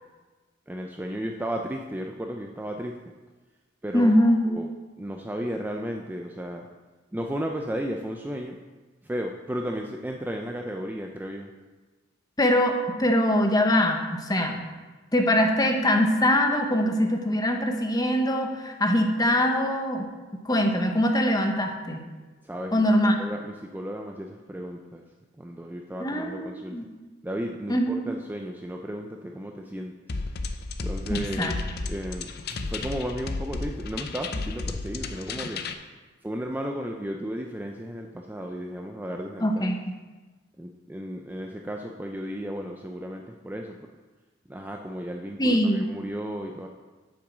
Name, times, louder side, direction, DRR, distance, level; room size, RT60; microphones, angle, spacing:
voice 1, 0.7-3.0 3.8-4.7 5.0-6.7 7.1-8.6 9.0-11.5 22.4-22.8 23.2-25.0 25.4-26.8 27.2-29.9 30.8-31.6 31.9-32.3 32.6-35.6 36.2-39.7 40.6-43.8 44.5-46.7, equal, 10° right, 2 dB, 0.4 m, -34 dB
voice 2, 3.9-4.4 12.4-14.6 15.1-20.1 20.4-22.0 22.7-23.1 26.0-26.9 27.7-28.1 31.1-31.6 39.4-39.8 45.4-45.9, left 1 dB, 20° left, 3 dB, 0.9 m, -23 dB
sound 1, 30.1-35.7, left 3 dB, 55° left, 0.6 m, -33 dB
8.3 x 6.1 x 6.0 m, 1.3 s
head